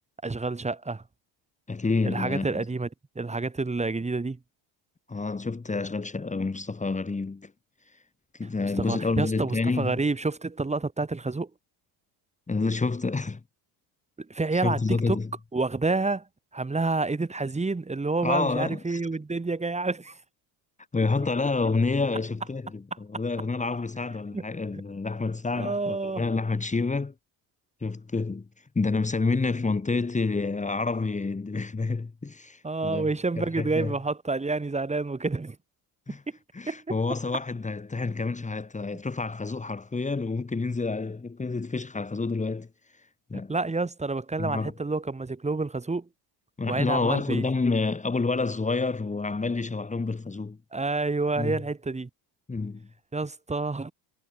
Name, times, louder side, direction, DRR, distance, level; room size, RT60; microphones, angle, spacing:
voice 1, 0.2-1.0 2.0-2.9 3.1-4.4 8.8-11.5 14.2-15.2 15.5-16.3 16.5-20.2 24.3-24.4 25.6-26.2 32.6-35.6 36.1-36.2 36.7-36.8 38.9-39.0 43.5-46.1 46.7-47.4 50.7-52.1 53.1-53.9, right 3 dB, 15° right, 4.7 m, -28 dB
voice 2, 1.7-2.7 5.1-7.5 8.4-10.0 12.5-13.4 14.5-15.3 18.2-19.0 20.9-27.1 27.8-28.5 28.8-33.1 33.4-33.9 36.1-36.2 36.5-42.7 43.3-43.5 44.4-44.7 46.6-50.6 51.4-51.6 52.5-52.9, left 3 dB, 15° left, 3.9 m, -28 dB
supercardioid pair, 115°, 49 cm